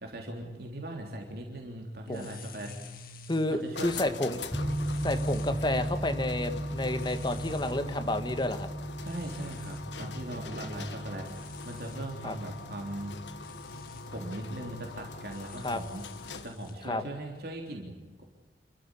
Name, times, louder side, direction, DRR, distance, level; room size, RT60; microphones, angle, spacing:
voice 1, 0.0-3.0 3.5-4.0 9.0-13.2 14.0-16.0 16.3-18.2, right 1 dB, 60° right, 1 dB, 3.5 m, -40 dB
sound 1, 2.1-16.8, left 2 dB, 55° left, 1.9 m, -50 dB
voice 2, 3.3-4.4 5.0-8.7 10.3-10.8 12.2-12.3 15.6-15.8 16.8-17.0, left 1 dB, 25° left, 8 dB, 1.7 m, -31 dB
sound 2, 3.7-16.7, left 4 dB, 85° left, 1.5 m, -44 dB
sound 3, 4.5-15.3, right 1 dB, 5° right, 1.6 m, -37 dB
28.0 x 14.5 x 9.9 m, 1.2 s
head